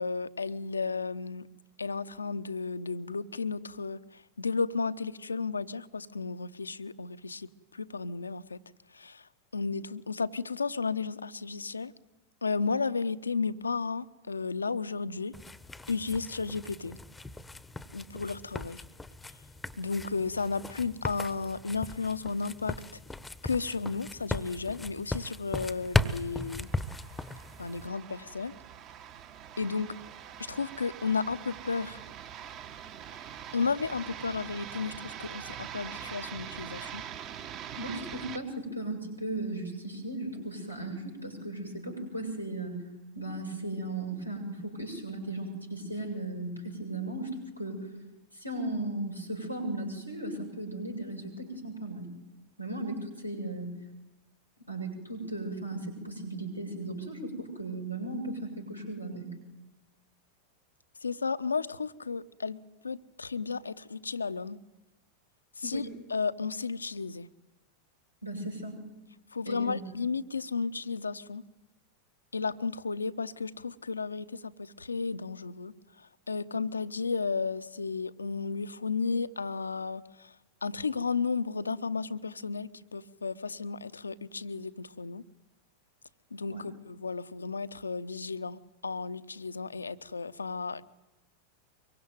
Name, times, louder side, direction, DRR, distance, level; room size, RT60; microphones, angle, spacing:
voice 1, 0.0-1.5 1.8-8.6 8.9-11.9 12.4-15.3 15.9-17.0 17.9-18.8 19.8-23.0 23.4-26.7 27.6-28.5 29.6-29.9 30.4-32.0 33.5-37.0 61.0-64.6 65.6-65.8 66.1-67.3 69.3-71.5 72.3-80.3 80.6-85.2 86.3-90.8, left 4 dB, 75° left, 13 dB, 0.9 m, -33 dB
sound 1, 15.3-27.9, left 2 dB, 10° left, 1.2 m, -37 dB
sound 2, 25.8-38.4, right 9 dB, 35° right, 1.9 m, -44 dB
voice 2, 37.8-42.8 43.2-47.9 48.3-52.1 52.6-53.7 54.7-59.3 65.6-65.9 68.2-68.8 69.4-69.8 86.5-86.6, right 2 dB, 90° right, 2 dB, 7.3 m, -36 dB
24.5 x 23.0 x 9.5 m, 1.0 s
figure-of-eight pair, 90°, 0 cm